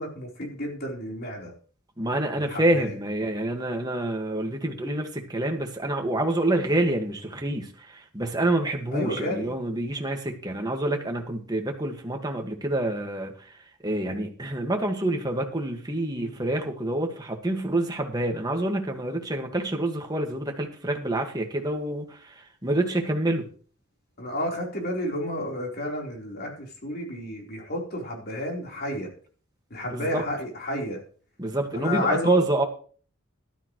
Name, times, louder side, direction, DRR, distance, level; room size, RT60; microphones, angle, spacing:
voice 1, 0.0-1.5 2.4-2.9 8.9-9.5 16.1-16.4 24.2-29.1 29.7-31.0 31.7-32.4, left 1 dB, 45° left, 0 dB, 4.1 m, -31 dB
voice 2, 2.0-13.3 13.8-22.3 22.6-23.4 29.8-30.2 31.4-32.6, right 1 dB, 20° right, 3 dB, 1.8 m, -27 dB
13.5 x 13.0 x 3.2 m, 0.43 s
head